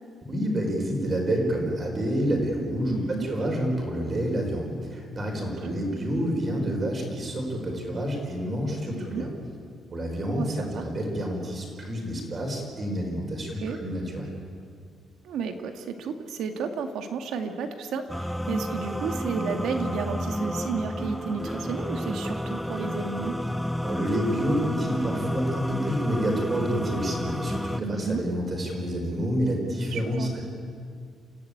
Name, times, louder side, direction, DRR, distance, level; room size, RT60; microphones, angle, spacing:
voice 1, 0.3-9.3 9.9-14.3 23.8-30.4, equal, 30° right, 1 dB, 5.1 m, -28 dB
voice 2, 2.9-3.3 5.6-5.7 8.9-9.3 10.4-10.8 13.6-13.8 15.2-23.3 27.8-28.2 29.9-30.3, right 5 dB, 85° right, 6 dB, 2.2 m, -32 dB
sound 1, 18.1-27.8, equal, ahead, 0.5 m, -31 dB
28.5 x 15.5 x 8.8 m, 2.2 s
cardioid pair, 165°, 0 cm